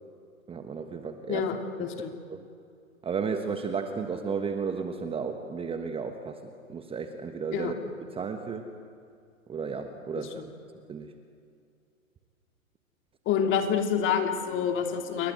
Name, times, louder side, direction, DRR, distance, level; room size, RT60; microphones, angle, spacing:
voice 1, 0.5-1.5 1.8-1.9 2.3-2.5 3.0-7.8 8.1-8.7 9.5-10.4 10.9-11.1, right 5 dB, 15° right, 6 dB, 1.3 m, -33 dB
voice 2, 1.3-2.1 7.5-7.7 10.3-10.5 13.3-15.3, left 7 dB, 30° left, 5 dB, 2.9 m, -27 dB
29.0 x 23.5 x 8.0 m, 2.4 s
hypercardioid pair, 120°, 41 cm